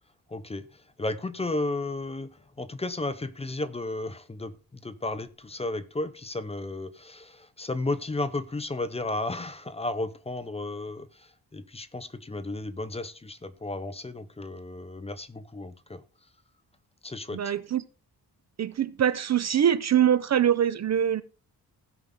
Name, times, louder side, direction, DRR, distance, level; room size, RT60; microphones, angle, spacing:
voice 1, 0.3-16.0 17.0-17.5, left 2 dB, 15° left, 0.6 m, -34 dB
voice 2, 17.3-17.8 18.6-21.2, right 9 dB, 45° right, 0.5 m, -23 dB
16.5 x 5.7 x 3.7 m
wide cardioid pair, 145°, 38 cm